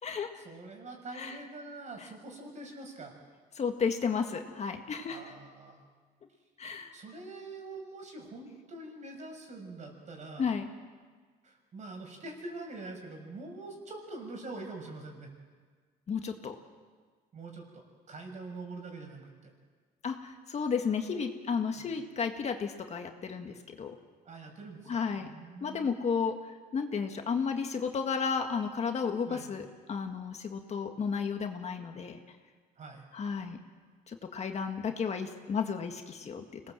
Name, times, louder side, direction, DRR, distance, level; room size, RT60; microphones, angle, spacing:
voice 1, 0.4-3.1 5.0-5.8 6.9-10.4 11.4-15.3 17.3-19.5 21.8-21.9 24.2-26.0 29.3-29.5 32.8-33.0, right 2 dB, 45° right, 2 dB, 6.5 m, -44 dB
voice 2, 3.6-5.3 6.6-6.9 10.4-10.7 16.1-16.6 20.0-24.0 24.9-25.3 25.6-32.2 33.1-33.6 34.1-36.6, left 6 dB, 40° left, 5 dB, 1.8 m, -33 dB
25.5 x 19.0 x 7.7 m, 1.5 s
cardioid pair, 110°, 17 cm